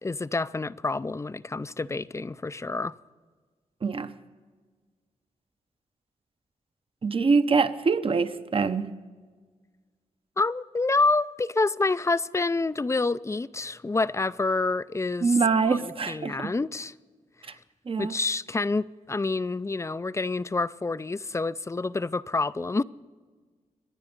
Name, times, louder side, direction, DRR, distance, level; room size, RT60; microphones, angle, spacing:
voice 1, 0.0-3.0 10.4-15.4 15.7-16.9 18.0-22.8, left 3 dB, 20° left, 0.4 m, -28 dB
voice 2, 7.0-8.9 15.2-16.5 17.9-18.1, right 4 dB, 45° right, 0.8 m, -24 dB
26.0 x 10.5 x 5.2 m
cardioid pair, 90°, 13 cm